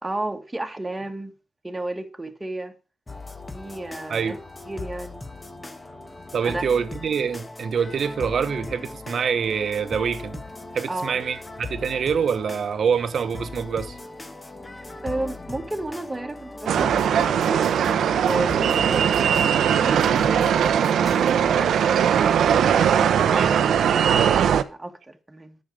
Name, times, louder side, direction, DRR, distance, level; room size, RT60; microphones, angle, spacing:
voice 1, 0.0-1.3 1.6-2.7 3.5-4.4 4.6-5.3 6.4-6.7 10.9-11.2 15.0-17.6 18.2-20.6 21.2-22.2 22.8-25.6, right 2 dB, 15° right, 1.5 m, -33 dB
sound 1, 3.1-21.3, left 2 dB, 25° left, 1.2 m, -39 dB
voice 2, 6.3-10.4 10.7-14.0 23.3-23.6, right 6 dB, 65° right, 1.0 m, -25 dB
sound 2, 16.7-24.6, right 8 dB, 80° right, 0.7 m, -20 dB
10.0 x 6.5 x 5.3 m
cardioid pair, 85°, 0 cm